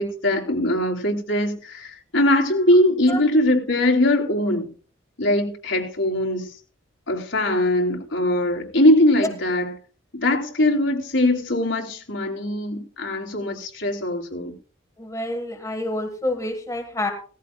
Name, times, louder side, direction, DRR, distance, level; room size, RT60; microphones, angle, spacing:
voice 1, 0.0-4.7 5.2-6.5 7.1-9.7 10.1-14.5, left 1 dB, 75° left, 3.2 m, -21 dB
voice 2, 15.0-17.1, left 1 dB, 15° left, 1.6 m, -28 dB
17.0 x 15.0 x 2.3 m
head